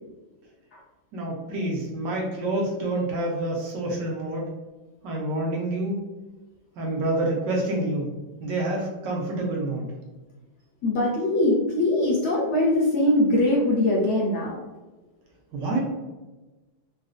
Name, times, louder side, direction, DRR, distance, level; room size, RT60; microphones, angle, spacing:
voice 1, 1.1-4.5 5.0-6.0 6.8-8.1 8.4-9.9 15.5-15.8, right 2 dB, 70° right, -2 dB, 1.2 m, -27 dB
voice 2, 10.8-14.6, left 1 dB, 65° left, -4 dB, 1.0 m, -22 dB
3.9 x 2.3 x 2.4 m, 1.2 s
omnidirectional pair, 2.2 m